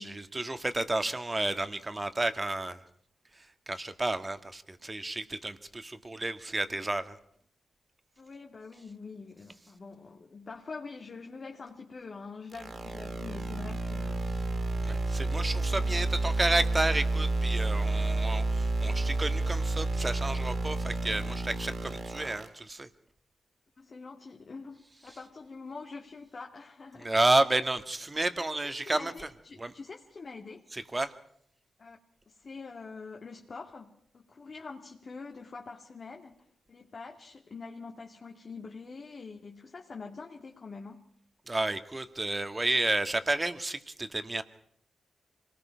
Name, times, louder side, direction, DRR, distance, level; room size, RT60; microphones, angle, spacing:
voice 1, 0.0-2.8 3.7-7.2 14.8-22.9 27.0-29.1 29.6-29.7 30.9-31.1 41.5-44.4, right 2 dB, 25° right, 10 dB, 1.8 m, -31 dB
voice 2, 8.2-14.3 15.7-16.0 23.8-27.1 28.6-30.7 31.8-32.0 32.3-41.1, left 4 dB, 50° left, 2 dB, 2.1 m, -45 dB
sound 1, 12.5-22.5, right 2 dB, 55° right, 4.4 m, -30 dB
26.0 x 19.0 x 5.8 m, 0.69 s
supercardioid pair, 50°, 0 cm